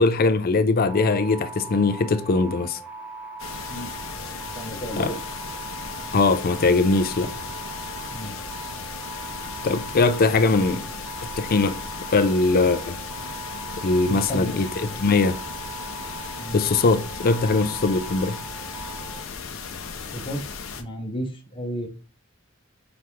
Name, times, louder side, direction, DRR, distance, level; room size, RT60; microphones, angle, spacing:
voice 1, 0.0-2.8 5.0-5.1 6.1-7.3 9.6-10.8 11.4-11.8 12.1-13.0 13.8-15.4 16.5-18.4, left 3 dB, 45° left, 0.4 m, -21 dB
sound 1, 0.9-19.2, right 3 dB, 5° right, 0.8 m, -39 dB
sound 2, 3.4-20.8, left 5 dB, 80° left, 0.7 m, -36 dB
voice 2, 4.5-5.1 8.1-8.3 14.1-14.6 16.4-16.6 20.1-20.4 20.8-21.9, equal, 25° left, 0.9 m, -32 dB
4.8 x 3.0 x 3.5 m
head